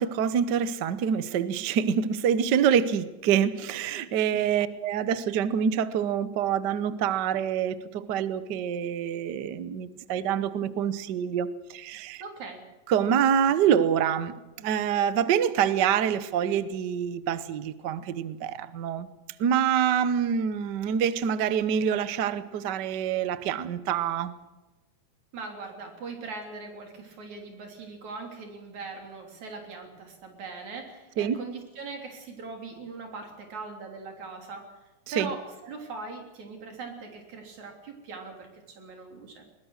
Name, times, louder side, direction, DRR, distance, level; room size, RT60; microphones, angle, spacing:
voice 1, 0.0-12.2 12.9-19.1 19.4-24.3 31.2-31.4 35.2-35.3, right 8 dB, 85° right, 14 dB, 0.9 m, -26 dB
voice 2, 12.2-12.7 25.3-34.8 35.1-39.4, right 4 dB, 70° right, 3 dB, 4.8 m, -40 dB
21.0 x 20.5 x 6.5 m, 1.1 s
omnidirectional pair, 3.4 m